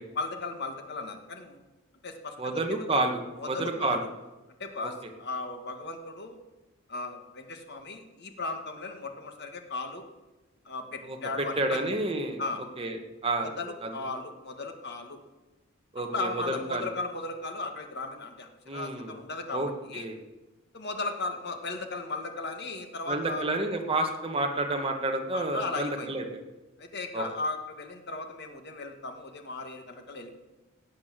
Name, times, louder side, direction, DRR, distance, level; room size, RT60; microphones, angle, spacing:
voice 1, 0.1-1.6 2.0-3.0 3.4-4.0 4.6-6.4 6.9-10.0 10.7-11.8 12.4-12.6 13.4-15.2 16.1-20.1 20.7-23.5 25.3-26.1 26.8-30.4, left 3 dB, 55° left, 5 dB, 1.9 m, -36 dB
voice 2, 2.4-4.0 11.0-12.4 12.8-13.5 13.8-13.9 15.9-16.9 18.7-19.2 19.5-20.2 23.1-26.4 27.1-27.2, right 2 dB, 25° right, 3 dB, 1.8 m, -30 dB
17.0 x 8.7 x 7.6 m, 1.1 s
head